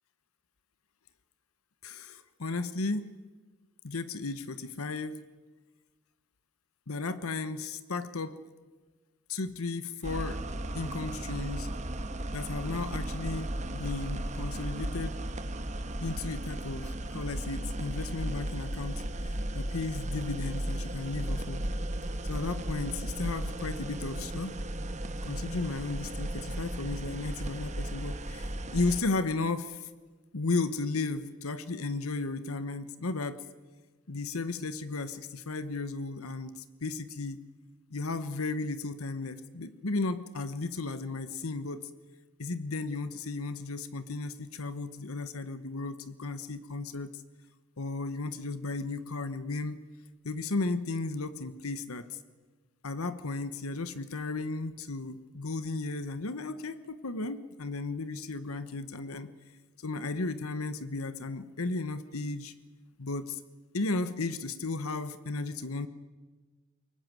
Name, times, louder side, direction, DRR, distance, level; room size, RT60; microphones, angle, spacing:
voice 1, 1.8-3.1 3.8-5.2 6.9-8.4 9.3-10.4 10.7-11.7 12.3-15.2 16.0-19.0 19.5-21.6 22.2-24.5 25.3-29.9 30.3-33.4 34.1-37.4 37.9-41.9 42.4-47.2 47.8-49.8 50.2-52.1 52.8-59.3 59.8-62.5 63.0-63.4 63.7-65.9, left 3 dB, 85° left, 12 dB, 1.2 m, -34 dB
sound 1, 10.0-29.0, right 1 dB, 35° right, 1.4 m, -35 dB
23.0 x 19.5 x 9.2 m, 1.3 s
head